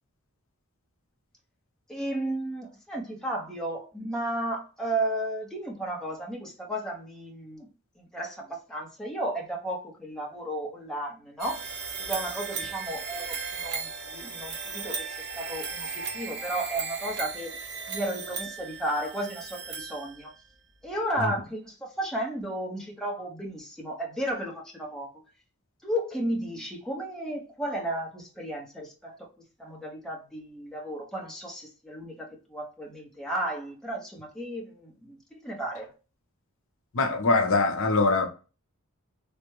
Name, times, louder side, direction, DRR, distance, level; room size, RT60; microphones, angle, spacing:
voice 1, 1.9-7.7 8.0-17.6 17.9-20.3 20.8-25.1 25.8-29.3 29.6-35.9, right 1 dB, 5° left, 0.7 m, -34 dB
sound 1, 11.4-20.5, right 5 dB, 50° right, 0.6 m, -36 dB
voice 2, 36.9-38.3, left 3 dB, 65° left, 0.6 m, -23 dB
3.3 x 2.1 x 3.1 m
head